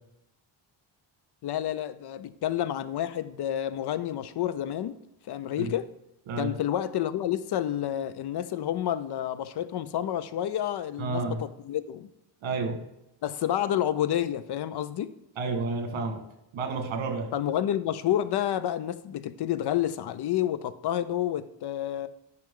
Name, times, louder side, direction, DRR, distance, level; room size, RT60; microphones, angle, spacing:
voice 1, 1.4-4.9 5.3-5.9 6.4-12.1 13.2-15.1 17.3-22.1, left 11 dB, 60° left, 0.5 m, -29 dB
voice 2, 11.0-11.4 12.4-12.8 15.3-16.2 16.5-17.3, right 3 dB, 70° right, 1.7 m, -30 dB
10.5 x 5.8 x 3.7 m
wide cardioid pair, 170°, 47 cm